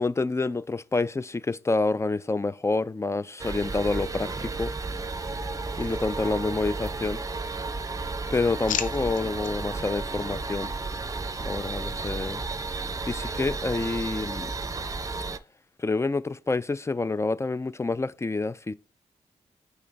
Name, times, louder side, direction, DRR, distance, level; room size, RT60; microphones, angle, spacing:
voice 1, 0.0-4.7 5.8-7.2 8.3-10.7 11.4-12.4 13.1-14.5 15.8-18.7, left 3 dB, 20° left, 0.4 m, -28 dB
sound 1, 3.4-15.4, right 3 dB, 25° right, 0.6 m, -33 dB
sound 2, 5.6-6.7 7.1-7.8 8.1-9.5 10.1-10.4, left 9 dB, 85° left, 0.5 m, -37 dB
5.0 x 4.2 x 4.6 m
cardioid pair, 55°, 13 cm